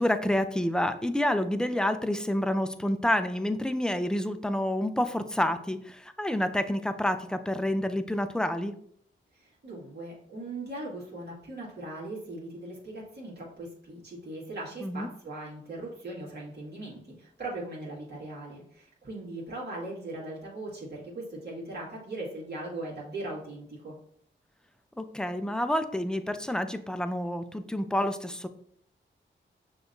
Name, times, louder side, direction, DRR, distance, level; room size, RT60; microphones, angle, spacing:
voice 1, 0.0-8.7 14.8-15.1 25.0-28.5, left 1 dB, 5° left, 9 dB, 0.4 m, -28 dB
voice 2, 9.3-24.0, right 2 dB, 55° right, -6 dB, 1.9 m, -39 dB
6.2 x 2.9 x 2.6 m, 0.63 s
cardioid pair, 70°, 21 cm